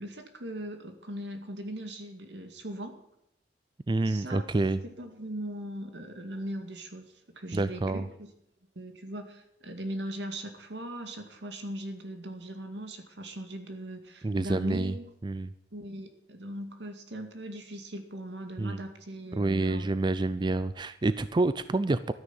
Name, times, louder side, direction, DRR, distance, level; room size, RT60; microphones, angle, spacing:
voice 1, 0.0-3.0 4.0-4.5 4.8-8.1 8.8-15.1 15.7-19.9, right 1 dB, 80° right, 5 dB, 2.2 m, -39 dB
voice 2, 3.9-4.8 7.5-8.1 14.2-14.9 15.2-15.5 18.6-18.8 19.3-22.1, right 2 dB, 25° right, 13 dB, 0.4 m, -28 dB
13.0 x 9.9 x 7.2 m, 0.78 s
head